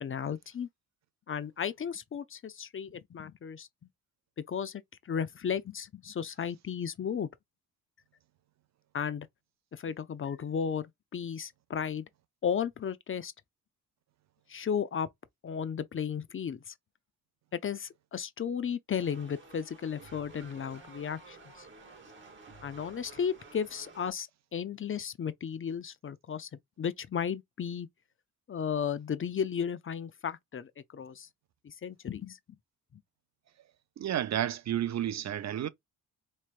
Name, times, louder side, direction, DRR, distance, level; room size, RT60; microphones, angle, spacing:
voice 1, 0.0-0.7 1.3-3.7 4.5-7.3 8.9-9.3 9.7-10.9 11.1-12.0 12.4-13.3 14.5-15.1 15.4-16.7 17.5-21.7 22.6-26.5 26.8-27.9 28.5-31.3 31.6-32.4, left 7 dB, 35° left, 0.6 m, -34 dB
sound 1, 18.9-24.1, right 3 dB, 30° right, 2.3 m, -52 dB
voice 2, 34.0-35.7, right 11 dB, 50° right, 0.5 m, -31 dB
4.3 x 3.2 x 2.5 m
supercardioid pair, 65°, 36 cm